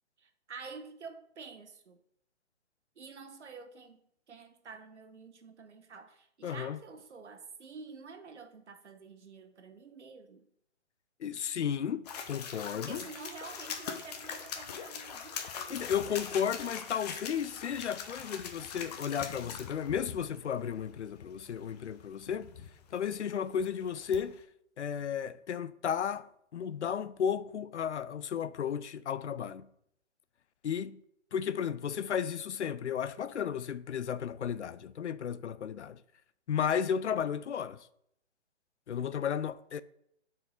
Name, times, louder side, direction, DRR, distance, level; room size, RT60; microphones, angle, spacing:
voice 1, 0.2-2.0 3.0-10.5 12.7-15.4 15.7-15.8, right 4 dB, 75° right, 1.3 m, -48 dB
voice 2, 6.4-6.8 11.2-13.0 15.7-22.5 22.9-24.4 24.8-29.7 30.6-31.0 31.3-36.0 36.5-37.9 38.9-39.8, left 8 dB, 75° left, 0.6 m, -34 dB
sound 1, 12.0-24.4, left 7 dB, 35° left, 0.9 m, -43 dB
7.1 x 4.8 x 5.0 m
hypercardioid pair, 140°, 35 cm